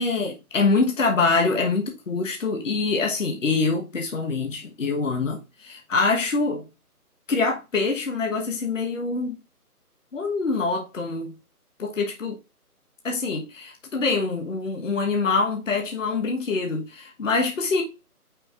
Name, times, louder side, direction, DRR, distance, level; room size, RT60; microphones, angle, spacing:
voice 1, 0.0-6.7 7.3-9.4 10.1-11.3 11.8-12.4 13.0-17.8, left 4 dB, 55° left, 1.3 m, -25 dB
8.6 x 4.8 x 2.5 m
figure-of-eight pair, 165°, 46 cm